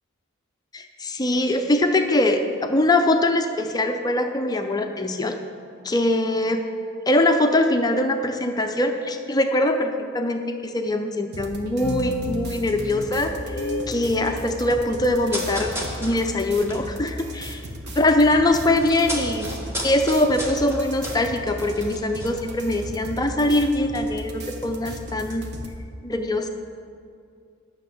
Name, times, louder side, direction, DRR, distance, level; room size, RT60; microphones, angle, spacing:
voice 1, 0.7-5.4 5.8-6.6 7.1-13.3 13.9-15.7 16.0-17.6 18.0-19.5 19.8-25.5 26.0-26.5, left 1 dB, 20° left, 5 dB, 0.5 m, -22 dB
sound 1, 11.3-25.8, equal, 55° right, 1.1 m, -36 dB
sound 2, 11.8-14.0, left 2 dB, 60° left, 0.7 m, -31 dB
sound 3, 15.2-18.0 18.3-22.9 23.2-23.3, equal, 10° right, 1.5 m, -34 dB
9.4 x 6.5 x 7.7 m, 2.4 s
head